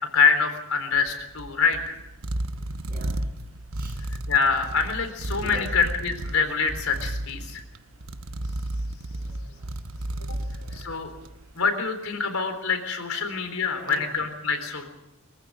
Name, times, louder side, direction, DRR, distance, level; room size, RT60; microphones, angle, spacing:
voice 1, 0.1-2.0 4.3-7.6 10.7-11.1 11.6-14.8, left 5 dB, 85° left, 7 dB, 3.9 m, -25 dB
sound 1, 0.9-11.5, right 1 dB, 75° right, 1.1 m, -33 dB
voice 2, 2.9-3.3 3.7-4.0 5.3-5.7 9.1-9.7 10.0-11.0 13.1-13.2 13.7-14.1, right 1 dB, 45° right, 1 dB, 7.9 m, -44 dB
23.5 x 14.5 x 8.9 m, 0.93 s
head